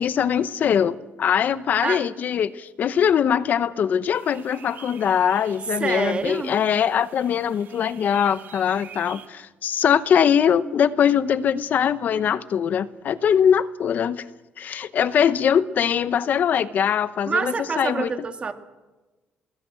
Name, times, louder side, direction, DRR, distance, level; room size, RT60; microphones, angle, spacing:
voice 1, 0.0-14.2 14.6-18.1, left 8 dB, 50° left, 0.9 m, -22 dB
sound 1, 4.1-9.3, right 8 dB, 60° right, 1.9 m, -47 dB
voice 2, 5.8-6.5 17.3-18.5, right 5 dB, 30° right, 2.0 m, -26 dB
24.0 x 21.0 x 8.8 m
cardioid pair, 125°, 4 cm